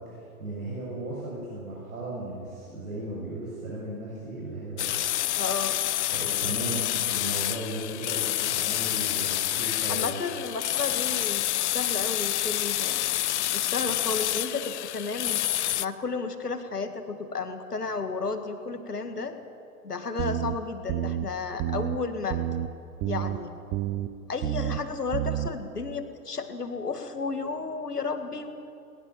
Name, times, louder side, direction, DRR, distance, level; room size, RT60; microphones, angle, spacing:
voice 1, 0.0-4.9 6.1-10.1, right 1 dB, 70° right, -5 dB, 6.9 m, -36 dB
sound 1, 4.8-15.9, left 14 dB, 50° left, 0.6 m, -28 dB
voice 2, 5.4-5.8 9.9-13.0 13.5-15.4 15.8-19.4 19.8-22.4 23.1-23.5 24.3-28.6, left 4 dB, 85° left, 7 dB, 2.1 m, -33 dB
sound 2, 20.2-20.5 20.9-21.3 21.6-22.0 22.3-22.7 23.0-23.4 23.7-24.1 24.4-24.8 25.1-25.5, right 12 dB, 25° right, 1.0 m, -29 dB
19.5 x 19.0 x 7.2 m, 2.5 s
figure-of-eight pair, 110°, 45 cm